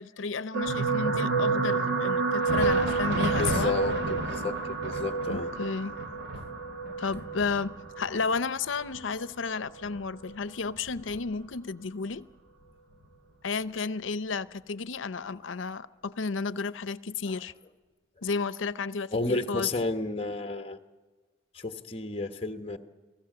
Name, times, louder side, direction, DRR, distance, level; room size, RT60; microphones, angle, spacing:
voice 1, 0.0-3.8 5.3-6.0 7.0-12.3 13.4-17.5 18.2-19.7, left 4 dB, 85° left, 0.7 m, -32 dB
sound 1, 0.5-9.0 9.8-10.0 10.3-10.4, right 4 dB, 85° right, 1.8 m, -29 dB
Thunder, 2.2-11.7 12.0-12.2 12.9-13.1 14.1-14.2, right 1 dB, 65° right, 2.6 m, -36 dB
voice 2, 3.4-5.5 6.3-6.5 17.3-17.4 19.1-20.8 21.5-22.8, left 2 dB, 30° left, 1.2 m, -32 dB
29.0 x 18.5 x 7.8 m
head